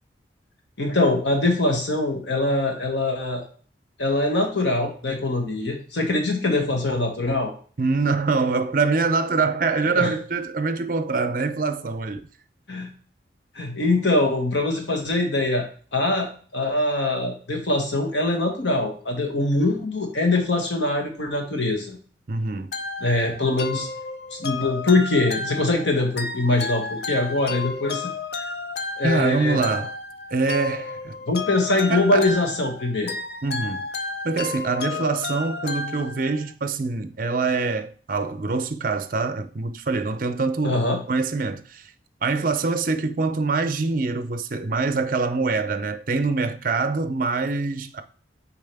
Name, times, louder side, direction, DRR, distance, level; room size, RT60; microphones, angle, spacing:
voice 1, 0.8-3.4 4.0-7.5 9.9-10.1 12.7-12.9 13.5-15.7 15.9-22.0 23.0-23.9 24.3-28.1 28.4-28.5 29.0-29.6 31.3-33.1 40.6-41.0, left 2 dB, 80° left, 1.5 m, -23 dB
voice 2, 7.8-12.2 22.3-22.7 29.0-29.9 30.3-31.2 31.9-32.3 33.4-33.8 34.2-40.8 41.1-41.9 42.2-48.0, right 4 dB, 50° right, 0.6 m, -24 dB
sound 1, 22.7-36.5, left 3 dB, 60° left, 0.6 m, -32 dB
7.1 x 4.7 x 3.5 m
head